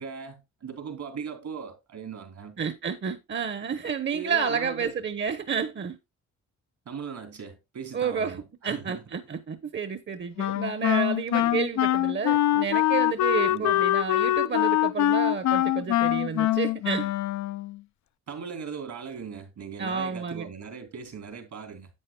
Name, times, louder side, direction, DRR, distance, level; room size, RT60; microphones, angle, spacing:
voice 1, 0.0-2.6 4.1-4.9 6.8-9.0 11.4-11.6 13.5-13.8 18.3-21.9, right 6 dB, 70° right, 3.1 m, -39 dB
voice 2, 2.6-6.0 7.9-8.4 8.6-17.1 19.8-20.5, right 6 dB, 40° right, 1.0 m, -30 dB
Wind instrument woodwind instrument, 10.4-17.8, left 13 dB, 70° left, 0.4 m, -24 dB
11.0 x 8.4 x 2.3 m
cardioid pair, 80°, 30 cm